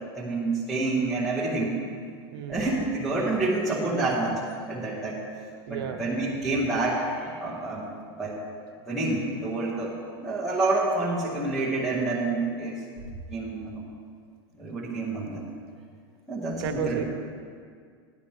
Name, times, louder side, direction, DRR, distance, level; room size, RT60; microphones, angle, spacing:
voice 1, 0.0-1.8 2.5-4.4 4.6-5.2 5.7-7.9 8.1-8.4 8.9-12.7 13.3-13.7 14.6-15.4 16.3-17.0, right 2 dB, ahead, -9 dB, 1.4 m, -28 dB
voice 2, 5.7-6.0 16.6-17.0, right 8 dB, 75° right, 5 dB, 1.1 m, -31 dB
15.0 x 10.5 x 3.2 m, 2.1 s
supercardioid pair, 160°, 13 cm